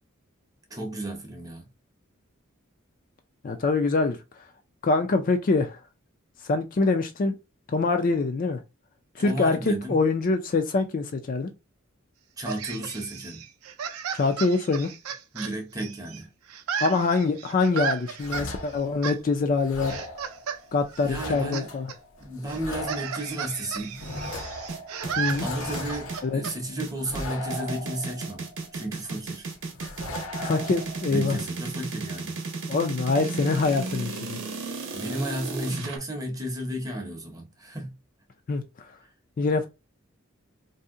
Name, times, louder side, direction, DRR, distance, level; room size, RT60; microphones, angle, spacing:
voice 1, 0.7-1.7 9.2-10.0 12.4-13.4 15.3-16.3 21.0-21.7 22.2-24.0 25.4-29.5 31.1-32.4 34.9-38.0, right 1 dB, 15° right, 0.7 m, -33 dB
voice 2, 3.4-4.4 4.8-5.8 6.4-7.3 7.7-8.6 9.2-11.5 14.1-14.9 16.8-20.0 20.7-21.9 25.2-25.5 26.2-26.4 30.4-31.4 32.7-34.4 38.5-38.9 39.4-39.7, left 3 dB, 40° left, 0.4 m, -24 dB
sound 1, 12.4-16.2 16.5-18.5 19.0-19.2 19.8-20.6 20.9-21.6 21.9-22.0 22.5-26.5, right 7 dB, 90° right, 0.4 m, -34 dB
sound 2, 18.2-19.2 19.6-29.1 29.5-31.1, left 1 dB, 70° left, 0.8 m, -38 dB
sound 3, 24.7-36.0, right 3 dB, 60° right, 0.8 m, -34 dB
2.7 x 2.1 x 3.6 m
head